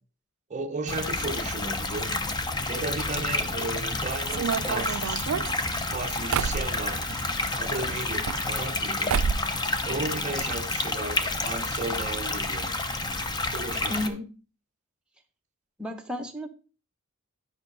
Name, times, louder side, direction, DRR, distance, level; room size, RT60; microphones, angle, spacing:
voice 1, 0.5-2.2 2.6-5.3 5.9-7.1 7.5-9.2 9.9-12.7 13.5-14.2, right 3 dB, 35° right, 0.8 m, -35 dB
sound 1, 0.9-14.1, left 2 dB, 20° left, 0.6 m, -30 dB
sound 2, 4.3-7.2 8.0-8.8 9.1-9.6 9.9-10.7 10.9-11.0 11.2-11.3 12.0-12.1 12.4-12.6, right 6 dB, 65° right, 0.4 m, -30 dB
voice 2, 13.9-14.3 15.8-16.5, left 1 dB, 5° right, 1.0 m, -32 dB
10.5 x 5.4 x 3.9 m
head